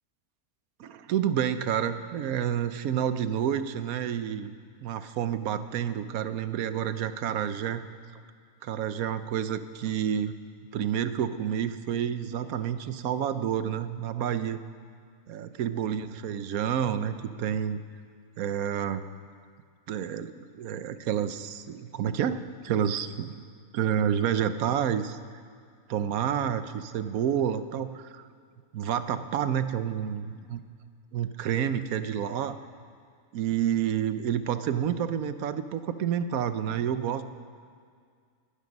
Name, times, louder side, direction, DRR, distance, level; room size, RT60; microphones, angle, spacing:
voice 1, 0.8-4.5 4.8-7.8 8.6-10.3 10.7-14.6 15.3-17.8 18.4-19.0 19.9-23.4 23.7-25.2 25.9-28.2 28.7-30.6 31.1-32.6 33.3-37.2, right 9 dB, 80° right, 11 dB, 1.2 m, -29 dB
21.5 x 12.0 x 5.3 m, 2.1 s
omnidirectional pair, 1.5 m